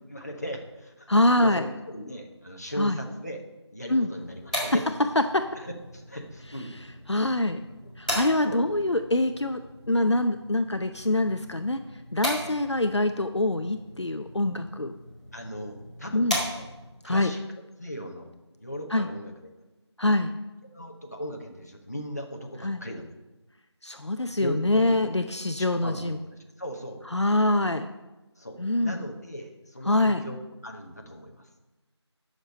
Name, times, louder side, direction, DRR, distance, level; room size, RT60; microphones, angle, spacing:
voice 1, 0.1-1.1 1.3-3.4 3.7-4.8 5.6-6.7 7.8-7.9 8.4-8.7 15.3-16.7 17.0-17.4 17.8-18.3 18.6-19.5 20.7-23.1 24.4-26.3 26.6-27.0 28.4-31.5, equal, 35° left, 2 dB, 1.2 m, -38 dB
voice 2, 1.1-1.7 2.8-3.0 3.9-4.1 4.6-4.8 5.2-5.5 6.7-6.8 7.1-7.6 8.0-9.6 9.9-11.8 12.1-14.9 16.1-16.4 17.0-17.3 18.9-19.1 20.0-20.3 22.6-22.8 23.8-26.2 27.1-27.9 28.6-29.0 29.9-30.2, left 1 dB, 70° left, 8 dB, 0.7 m, -24 dB
sound 1, 4.1-17.0, equal, 15° left, 1.7 m, -38 dB
10.5 x 6.7 x 5.4 m, 1.1 s
figure-of-eight pair, 175°, 15 cm